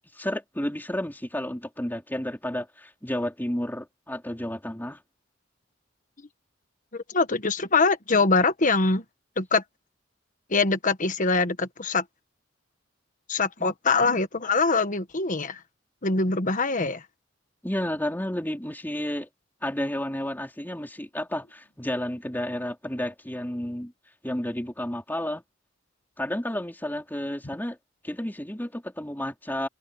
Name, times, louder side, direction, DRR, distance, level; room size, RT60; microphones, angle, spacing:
voice 1, 0.2-5.0 13.6-13.7 17.6-19.3 19.6-23.9 24.2-25.4 26.2-27.8 28.0-29.7, left 1 dB, 10° left, 4.1 m, -31 dB
voice 2, 6.9-9.0 9.4-9.6 10.5-12.0 13.3-15.6 16.0-17.0, left 3 dB, 40° left, 1.5 m, -23 dB
head